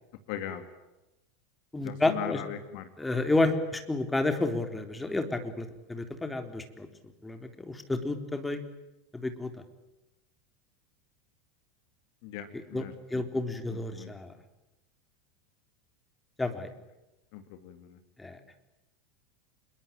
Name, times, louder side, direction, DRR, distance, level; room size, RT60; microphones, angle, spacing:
voice 1, 0.3-0.7 1.8-2.8 12.2-13.2 13.9-14.1 17.3-18.0, left 10 dB, 50° left, 9 dB, 2.3 m, -39 dB
voice 2, 1.7-2.4 3.0-6.9 7.2-8.6 9.1-9.5 12.5-12.8 13.1-14.3 16.4-16.7 18.2-18.4, left 2 dB, 10° left, 7 dB, 3.7 m, -30 dB
27.0 x 22.5 x 9.0 m, 0.99 s
figure-of-eight pair, 80°, 0 cm